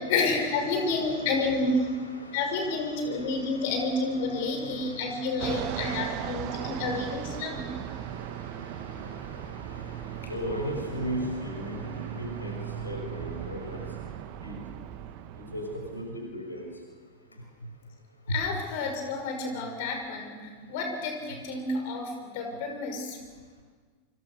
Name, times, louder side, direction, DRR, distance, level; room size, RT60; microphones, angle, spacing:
voice 1, 0.1-1.9 2.3-7.7 18.3-23.2, left 3 dB, 50° left, 4 dB, 6.0 m, -30 dB
voice 2, 2.9-3.7 4.2-6.8 7.3-13.9 14.4-14.5 15.4-16.6 18.3-18.4, equal, 80° left, 3 dB, 5.9 m, -38 dB
Fixed-wing aircraft airplane, 5.4-16.2, right 11 dB, 45° right, 1.8 m, -38 dB
28.5 x 26.0 x 6.6 m, 1.5 s
figure-of-eight pair, 90°, 0 cm